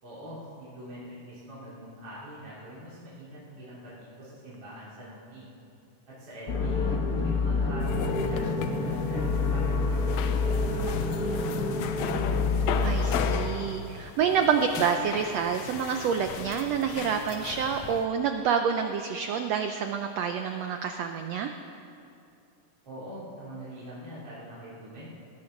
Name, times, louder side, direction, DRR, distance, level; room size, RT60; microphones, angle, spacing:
voice 1, 0.0-5.5 6.2-6.9 7.2-12.1 22.8-25.1, equal, 45° right, -10 dB, 4.0 m, -43 dB
sound 1, 6.5-13.4, left 3 dB, 90° left, 0.7 m, -27 dB
sound 2, 7.8-18.1, left 8 dB, 75° left, 1.8 m, -37 dB
voice 2, 12.8-21.5, right 7 dB, 85° right, 6 dB, 1.4 m, -28 dB
19.5 x 18.0 x 3.9 m, 2.6 s
omnidirectional pair, 3.8 m